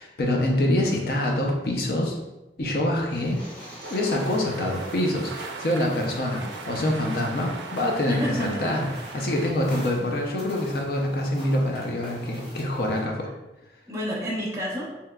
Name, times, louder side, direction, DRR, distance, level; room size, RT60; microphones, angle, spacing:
voice 1, 0.0-2.2 2.6-3.4 3.9-8.9 9.1-13.3, left 1 dB, 55° left, 0 dB, 0.5 m, -25 dB
sound 1, 2.9-4.7, equal, 10° left, 1.0 m, -46 dB
sound 2, 3.2-13.0, equal, 35° left, 0.9 m, -45 dB
sound 3, 3.8-9.5, right 3 dB, 85° right, 0.4 m, -39 dB
voice 2, 8.1-8.9 9.2-9.3 13.9-14.9, equal, 15° right, -5 dB, 0.7 m, -30 dB
3.4 x 2.8 x 2.2 m, 1.0 s
head